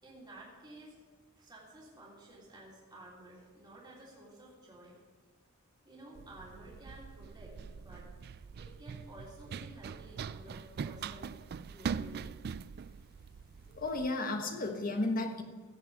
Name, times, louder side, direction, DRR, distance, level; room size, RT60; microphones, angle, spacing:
voice 1, 0.0-0.9 1.3-5.0 5.8-8.1 8.6-12.3, right 1 dB, 20° right, -6 dB, 3.3 m, -53 dB
Run, 6.2-14.1, right 6 dB, 45° right, 0.3 m, -42 dB
voice 2, 13.7-15.4, left 2 dB, 40° left, 5 dB, 1.3 m, -33 dB
17.0 x 5.8 x 7.3 m, 1.4 s
head